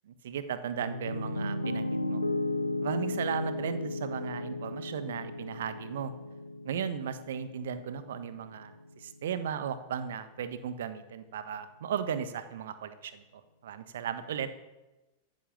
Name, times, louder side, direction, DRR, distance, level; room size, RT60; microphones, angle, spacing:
voice 1, 0.1-2.2 2.8-6.1 6.6-8.7 9.0-13.2 13.6-14.5, right 8 dB, 60° right, 12 dB, 1.3 m, -36 dB
Piano, 0.8-8.9, left 2 dB, 85° left, 0.8 m, -35 dB
14.0 x 12.0 x 7.2 m, 1.1 s
figure-of-eight pair, 90°, 0 cm